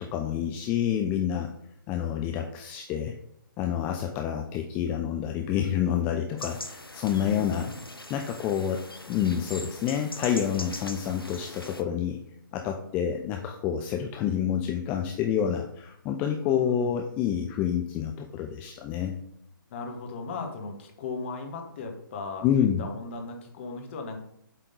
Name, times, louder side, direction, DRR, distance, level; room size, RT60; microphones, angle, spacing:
voice 1, 0.0-1.5 1.9-3.1 3.6-7.7 8.1-12.2 12.5-19.1 22.4-22.9, left 9 dB, 15° left, 4 dB, 0.4 m, -28 dB
sound 1, 6.4-11.8, left 1 dB, 90° left, 0.9 m, -42 dB
voice 2, 7.1-7.8 16.4-16.9 19.7-24.2, left 4 dB, 35° left, 3 dB, 1.4 m, -37 dB
7.8 x 3.7 x 5.3 m, 0.72 s
figure-of-eight pair, 135°, 12 cm